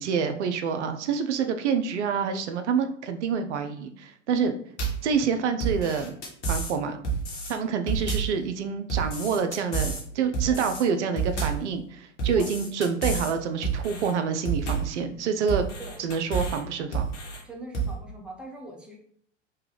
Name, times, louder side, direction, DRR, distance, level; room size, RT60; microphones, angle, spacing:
voice 1, 0.0-4.5 5.0-6.2 6.4-7.0 7.5-15.6 16.0-17.1, right 6 dB, 70° right, 7 dB, 0.5 m, -27 dB
sound 1, 4.8-5.1 5.6-6.7 7.0-7.5 7.9-8.4 8.9-10.0 10.3-10.8 11.2-11.7 12.2-13.3 13.6-14.1 14.5-15.0 15.5-16.6 16.9-17.4 17.7-17.9, right 5 dB, 75° left, 1.2 m, -29 dB
voice 2, 17.4-19.0, right 1 dB, 5° right, -1 dB, 0.6 m, -42 dB
3.3 x 2.2 x 3.3 m, 0.64 s
hypercardioid pair, 95°, 36 cm